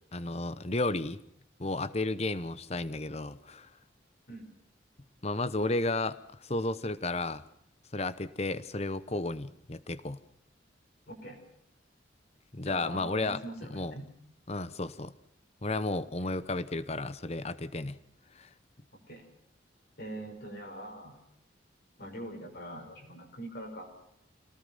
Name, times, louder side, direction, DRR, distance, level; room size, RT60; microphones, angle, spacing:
voice 1, 0.1-1.2 1.6-3.7 5.2-7.4 7.9-10.2 12.5-13.4 13.7-13.9 14.5-15.1 15.6-18.0 18.3-18.5, left 2 dB, 35° left, 15 dB, 1.0 m, -33 dB
voice 2, 11.1-11.4 12.6-14.1 19.1-19.2 20.0-21.2 22.0-23.9, right 1 dB, 55° left, 1 dB, 6.1 m, -42 dB
26.5 x 19.0 x 5.7 m, 0.75 s
head